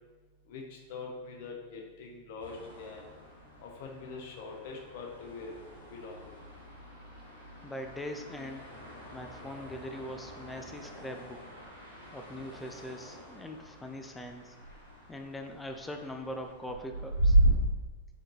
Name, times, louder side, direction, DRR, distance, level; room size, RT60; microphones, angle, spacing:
voice 1, 0.5-3.0 3.6-5.5 5.9-6.4, left 4 dB, 50° left, 0 dB, 0.7 m, -43 dB
sound 1, 2.4-17.5, right 1 dB, 85° left, 1.3 m, -35 dB
voice 2, 7.6-8.8 9.1-11.4 12.1-14.6 15.1-17.4, left 1 dB, 10° left, 5 dB, 0.4 m, -41 dB
3.7 x 3.6 x 2.7 m, 1.3 s
figure-of-eight pair, 90°, 0 cm